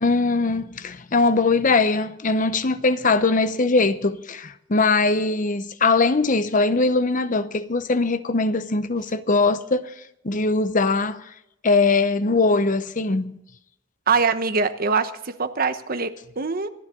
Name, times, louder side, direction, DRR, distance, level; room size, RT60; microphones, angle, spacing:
voice 1, 0.0-9.9 10.2-11.2 11.6-13.4, left 3 dB, 45° left, 0.9 m, -21 dB
voice 2, 14.1-16.7, right 4 dB, 50° right, 1.1 m, -23 dB
26.0 x 10.5 x 3.8 m
head